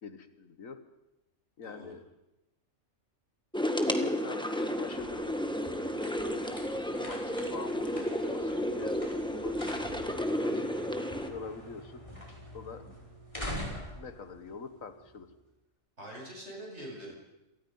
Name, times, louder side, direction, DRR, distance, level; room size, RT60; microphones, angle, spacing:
voice 1, 0.0-0.8 1.6-2.0 4.0-5.3 7.1-10.7 11.3-12.0 12.5-12.8 13.4-13.6 13.9-15.3, left 5 dB, 85° left, 10 dB, 1.9 m, -44 dB
voice 2, 1.6-2.0 16.0-17.1, right 1 dB, 55° right, -2 dB, 8.1 m, -44 dB
sound 1, 3.5-11.3, equal, 5° left, 1.5 m, -32 dB
sound 2, 4.7-15.4, equal, 25° left, 5.2 m, -45 dB
27.5 x 19.0 x 5.6 m, 0.94 s
omnidirectional pair, 1.4 m